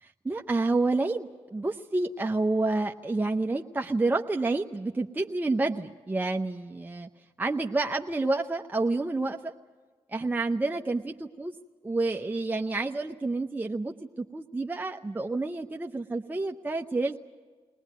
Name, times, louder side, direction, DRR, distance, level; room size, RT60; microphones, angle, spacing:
voice 1, 0.0-7.1 7.4-9.5 10.1-11.5 11.8-17.2, right 2 dB, 15° right, 3 dB, 0.8 m, -29 dB
22.0 x 18.5 x 9.4 m, 1.5 s
cardioid pair, 65°, 11 cm